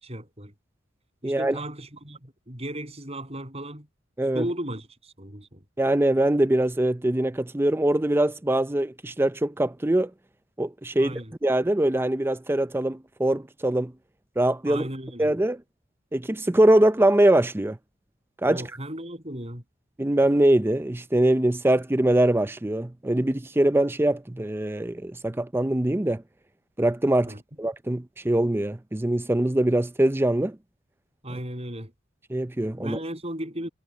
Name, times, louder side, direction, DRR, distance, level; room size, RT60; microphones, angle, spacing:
voice 1, 0.0-0.5 1.2-3.9 4.3-5.6 11.0-11.3 14.7-15.3 18.5-19.6 27.3-27.4 31.2-31.9 32.8-33.7, right 1 dB, 35° right, 7.6 m, -35 dB
voice 2, 1.2-1.6 4.2-4.5 5.8-10.1 10.6-13.9 14.4-14.9 15.2-15.6 16.1-17.8 18.4-18.7 20.0-26.2 26.8-30.6 31.3-31.4 32.3-33.0, right 1 dB, 10° right, 0.5 m, -23 dB
head